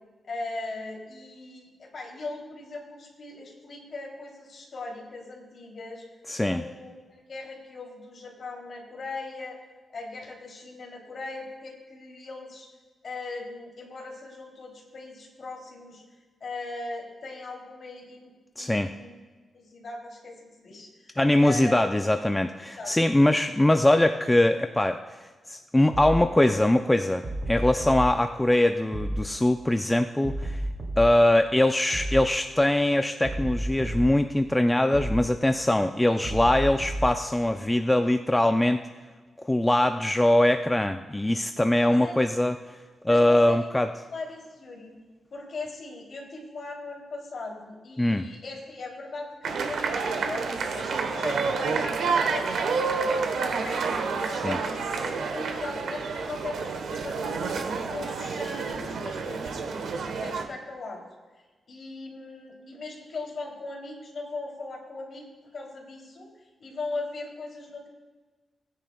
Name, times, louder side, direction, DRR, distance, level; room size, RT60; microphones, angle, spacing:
voice 1, 0.2-6.0 6.4-9.6 9.9-12.7 13.0-16.0 16.4-18.3 18.6-19.2 19.5-21.8 22.8-22.9 41.7-42.2 43.0-43.8 44.1-45.0 45.3-57.5 57.8-61.0 61.7-66.3 66.6-67.9, left 3 dB, 55° left, 0 dB, 3.0 m, -39 dB
voice 2, 6.3-6.6 18.6-18.9 21.2-25.0 25.5-30.6 31.0-38.8 39.4-42.6 43.0-43.9 48.0-48.3 54.4-54.6, left 1 dB, 10° left, 7 dB, 0.4 m, -22 dB
sound 1, 25.9-26.3 27.2-28.1 28.9-29.3 30.2-31.1 31.9-32.3 33.2-34.1 34.9-35.3 36.2-37.1, right 1 dB, 40° right, 2.5 m, -31 dB
sound 2, 49.4-60.4, right 5 dB, 90° right, 1.1 m, -29 dB
19.5 x 10.0 x 2.3 m, 1.3 s
wide cardioid pair, 120°, 0 cm